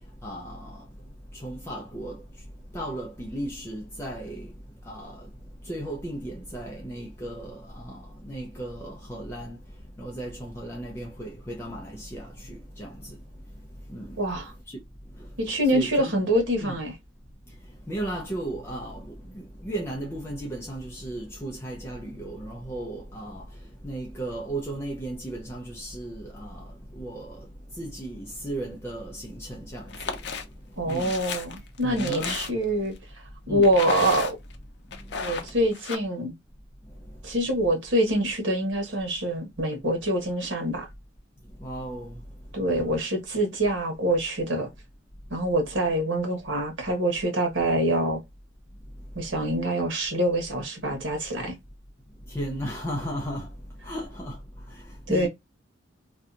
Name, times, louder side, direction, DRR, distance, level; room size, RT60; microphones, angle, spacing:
voice 1, 0.2-0.9 1.3-2.2 2.7-4.5 4.8-5.3 5.6-9.6 10.0-13.2 13.9-14.2 14.7-14.8 15.2-15.3 15.6-16.2 16.6-16.8 17.9-23.5 23.8-30.2 30.8-31.2 31.8-32.4 33.5-33.7 41.6-42.2 52.3-53.5 53.8-54.4 54.7-55.3, right 1 dB, 15° left, 0.5 m, -35 dB
voice 2, 14.2-14.5 15.4-16.9 30.8-32.9 33.5-34.3 35.2-36.3 37.2-40.9 42.5-44.7 45.3-48.2 49.1-51.6 55.1-55.3, right 1 dB, 85° right, 1.2 m, -25 dB
sound 1, 29.9-30.4 30.9-32.8 33.6-34.5 34.9-36.0, left 5 dB, 60° left, 0.6 m, -33 dB
2.7 x 2.2 x 2.4 m
head